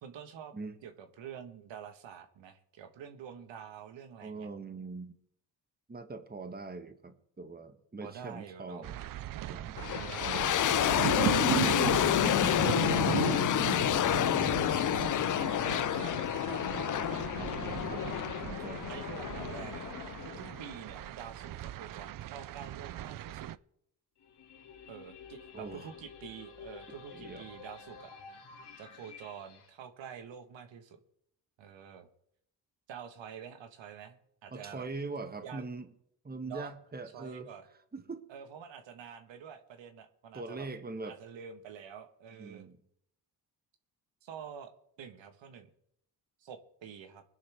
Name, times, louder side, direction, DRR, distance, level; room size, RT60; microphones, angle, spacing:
voice 1, 0.0-0.5 0.8-4.5 8.0-8.8 10.0-10.6 12.4-15.2 15.6-18.2 18.9-19.9 20.2-23.5 24.9-28.1 28.8-31.0 31.6-32.1 32.9-34.9 35.4-35.6 36.5-36.7 37.1-37.7 38.3-40.7 41.0-42.6 44.2-44.7 45.0-45.7 46.4-47.2, right 8 dB, 70° right, 7 dB, 1.5 m, -47 dB
voice 2, 4.2-5.1 5.9-9.0 9.5-9.9 10.2-10.7 17.9-18.0 18.6-18.8 25.5-25.9 27.1-27.5 34.5-35.9 36.2-37.5 37.9-38.3 40.3-41.2 42.4-42.8, right 3 dB, 20° right, 9 dB, 1.3 m, -42 dB
sound 1, 8.8-23.6, right 13 dB, 45° right, 0.5 m, -37 dB
sound 2, 9.8-20.7, left 12 dB, 45° left, 0.5 m, -29 dB
sound 3, 24.2-29.7, left 6 dB, 60° left, 2.4 m, -51 dB
21.0 x 11.0 x 3.5 m, 0.71 s
supercardioid pair, 65°, 46 cm